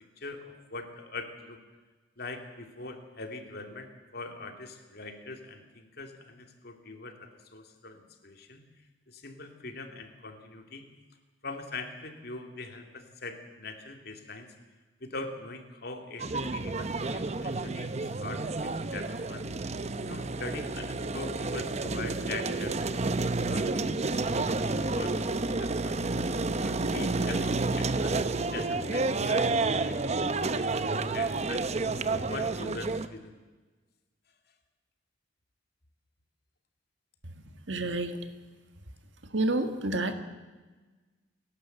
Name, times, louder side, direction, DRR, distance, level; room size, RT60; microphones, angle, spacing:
voice 1, 0.2-1.6 2.2-8.6 9.1-10.8 11.4-14.5 15.0-19.4 20.1-23.1 23.4-26.0 26.5-28.2 28.5-31.7 32.2-33.4, left 3 dB, 60° left, 5 dB, 2.5 m, -42 dB
sound 1, 16.2-33.1, right 3 dB, 35° right, 0.8 m, -30 dB
voice 2, 37.7-38.2 39.3-40.1, right 2 dB, 90° right, 7 dB, 1.8 m, -29 dB
29.0 x 11.5 x 7.9 m, 1.3 s
head